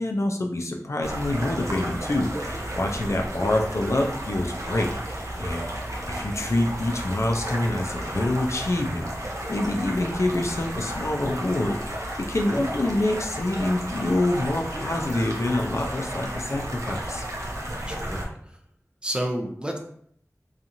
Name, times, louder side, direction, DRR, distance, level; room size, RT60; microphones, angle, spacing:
voice 1, 0.0-5.7 6.1-17.3, left 1 dB, 60° left, 3 dB, 0.4 m, -26 dB
sound 1, 1.0-18.2, right 1 dB, 65° right, 0.6 m, -33 dB
voice 2, 17.9-18.3 19.0-19.8, equal, 15° right, 2 dB, 0.4 m, -30 dB
2.8 x 2.4 x 2.6 m, 0.66 s
wide cardioid pair, 45°, 6 cm